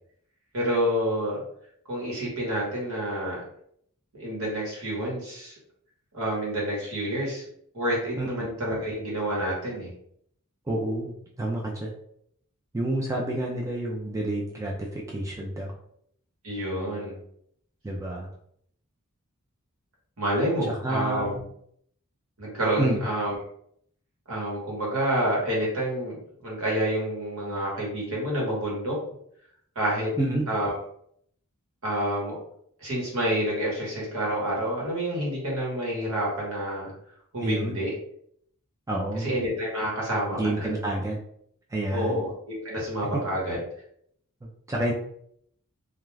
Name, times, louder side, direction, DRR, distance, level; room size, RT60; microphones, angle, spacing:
voice 1, 0.5-1.4 1.9-3.4 4.1-5.5 6.1-7.4 7.7-9.9 16.4-17.2 20.2-21.4 22.4-23.3 24.3-29.0 29.7-30.1 30.5-30.7 31.8-32.4 32.8-36.9 37.3-37.9 39.2-40.7 41.9-43.6, equal, 70° right, -4 dB, 1.2 m, -28 dB
voice 2, 8.2-8.5 10.7-11.9 12.7-15.7 17.8-18.3 20.7-21.4 22.8-23.0 30.2-30.4 37.4-37.8 38.9-39.3 40.3-41.2 41.7-42.2 43.1-43.2 44.4-44.9, right 1 dB, 15° right, -2 dB, 0.3 m, -29 dB
2.3 x 2.3 x 3.1 m, 0.68 s
head